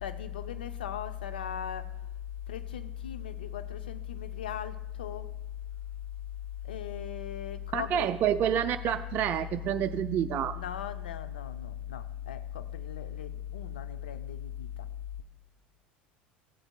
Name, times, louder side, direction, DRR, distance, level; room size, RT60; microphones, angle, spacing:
voice 1, 0.0-1.9 2.5-5.3 6.7-8.1 10.5-14.7, left 9 dB, 85° left, 0.4 m, -37 dB
voice 2, 7.7-10.6, right 10 dB, 45° right, 0.4 m, -28 dB
15.0 x 7.8 x 2.2 m
hypercardioid pair, 80°, 5 cm